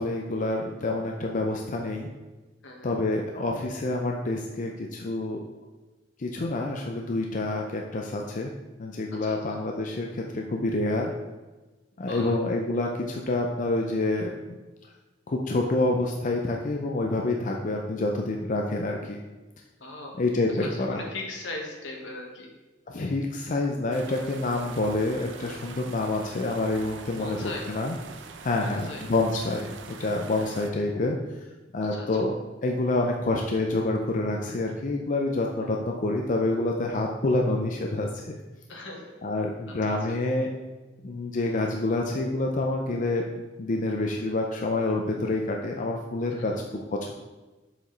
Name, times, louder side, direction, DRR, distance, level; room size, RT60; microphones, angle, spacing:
voice 1, 0.0-2.1 2.8-5.4 6.2-8.5 8.8-11.1 12.0-14.6 15.3-19.2 20.2-21.0 22.9-28.0 28.4-31.2 31.7-32.3 32.6-38.4 39.2-40.5 41.0-43.2 43.6-46.5 47.0-47.1, left 2 dB, 45° left, 1 dB, 0.5 m, -27 dB
voice 2, 2.6-2.9 9.2-9.4 12.1-12.4 19.8-20.2 20.5-22.5 27.2-27.7 28.6-29.0 30.4-30.5 31.9-32.1 38.7-39.1 39.7-40.2 46.5-46.6, left 2 dB, 80° left, 0 dB, 1.5 m, -39 dB
sound 1, 23.9-30.7, right 4 dB, 85° right, 0.6 m, -44 dB
7.2 x 5.1 x 3.9 m, 1.2 s
head